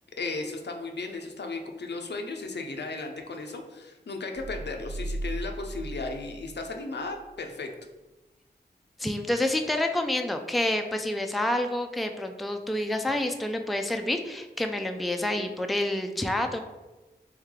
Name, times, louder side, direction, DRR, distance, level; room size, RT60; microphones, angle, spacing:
voice 1, 0.2-7.7, left 3 dB, 70° left, 4 dB, 0.5 m, -35 dB
sound 1, 4.4-6.9 7.3-7.4, right 1 dB, 30° right, 0.9 m, -37 dB
voice 2, 9.0-16.6, left 1 dB, ahead, 5 dB, 0.4 m, -28 dB
3.2 x 3.2 x 3.6 m, 1.1 s
cardioid pair, 40°, 18 cm